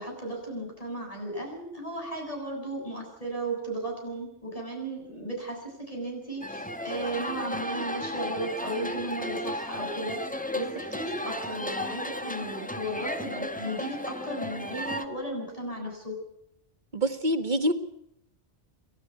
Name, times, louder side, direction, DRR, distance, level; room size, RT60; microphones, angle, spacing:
voice 1, 0.0-10.2 10.5-16.2, right 1 dB, 30° left, 0 dB, 8.3 m, -35 dB
sound 1, 6.4-15.1, left 1 dB, 5° left, 1.2 m, -34 dB
voice 2, 16.9-17.7, right 1 dB, 40° right, 8 dB, 1.9 m, -25 dB
28.5 x 12.5 x 8.3 m, 0.76 s
omnidirectional pair, 1.2 m